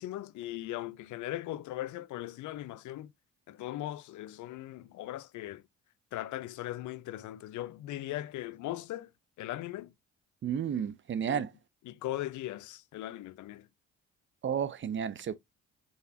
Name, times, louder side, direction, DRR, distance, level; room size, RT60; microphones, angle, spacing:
voice 1, 0.0-3.1 3.5-5.6 6.1-9.1 9.4-9.9 11.2-11.5 11.8-13.7, left 14 dB, 75° left, 0.5 m, -39 dB
voice 2, 10.4-11.5 14.4-15.4, right 8 dB, 40° right, 0.5 m, -32 dB
4.0 x 3.9 x 2.7 m
cardioid pair, 90°, 30 cm